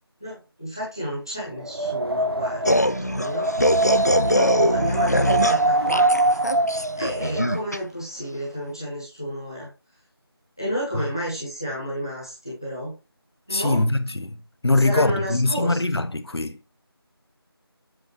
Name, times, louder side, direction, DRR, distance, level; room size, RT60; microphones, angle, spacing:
voice 1, 0.2-3.5 4.2-6.1 7.0-9.7 10.6-12.9 13.5-13.8 14.8-15.8, equal, 10° left, 1.2 m, -31 dB
Wind, 1.6-7.6, right 2 dB, 70° right, 0.9 m, -23 dB
sound 1, 2.7-7.8, equal, 40° left, 0.3 m, -22 dB
voice 2, 13.5-14.4 14.6-16.6, left 2 dB, 80° left, 0.8 m, -22 dB
7.9 x 5.1 x 3.0 m
figure-of-eight pair, 180°, 13 cm